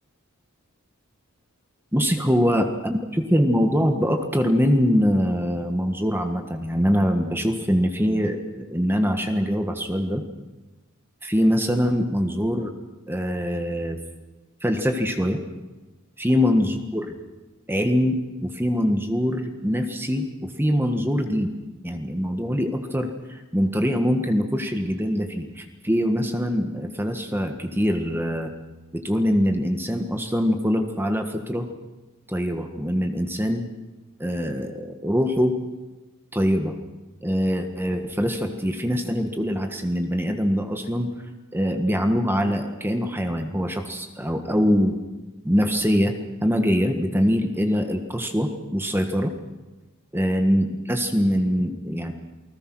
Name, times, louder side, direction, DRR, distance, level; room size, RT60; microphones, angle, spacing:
voice 1, 1.9-10.2 11.2-12.7 13.1-14.0 14.6-15.4 16.2-17.1 17.7-21.5 21.8-28.5 28.9-31.7 32.3-33.7 34.2-35.6 36.3-36.7 37.2-41.1 41.5-45.0 45.4-46.1 46.4-49.3 50.1-52.1, equal, 10° right, 5 dB, 1.5 m, -23 dB
28.5 x 20.0 x 6.2 m, 1.1 s
head